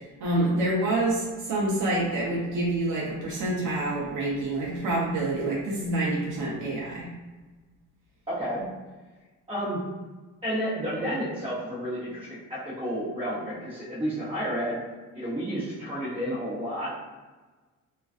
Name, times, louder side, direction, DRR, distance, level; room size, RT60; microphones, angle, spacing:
voice 1, 0.2-7.1, right 1 dB, 80° right, -5 dB, 0.7 m, -27 dB
voice 2, 8.3-8.6 9.5-9.8 10.4-14.8 15.1-16.9, equal, 20° right, -11 dB, 0.8 m, -31 dB
2.3 x 2.3 x 2.4 m, 1.3 s
cardioid pair, 90°, 30 cm